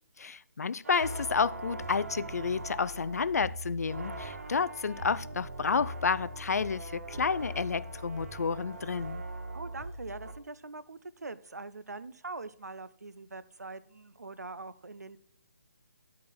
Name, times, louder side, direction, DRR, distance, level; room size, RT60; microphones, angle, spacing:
voice 1, 0.2-9.2, left 5 dB, 75° left, 0.4 m, -30 dB
sound 1, 0.8-10.3, right 1 dB, 65° right, 1.6 m, -41 dB
voice 2, 9.5-15.2, right 3 dB, 85° right, 0.6 m, -43 dB
11.0 x 4.7 x 4.3 m
figure-of-eight pair, 145°, 9 cm